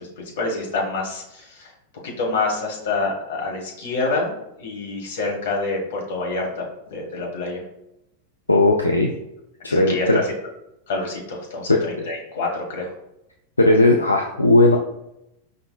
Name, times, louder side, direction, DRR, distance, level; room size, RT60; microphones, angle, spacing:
voice 1, 0.0-1.7 2.0-7.6 9.7-10.2 10.9-12.9, left 3 dB, 55° left, -1 dB, 1.4 m, -27 dB
voice 2, 8.5-9.1 9.6-10.2 11.7-12.1 13.6-14.8, left 2 dB, 80° left, 1 dB, 0.4 m, -17 dB
5.3 x 3.9 x 2.3 m, 0.83 s
figure-of-eight pair, 90°, 0 cm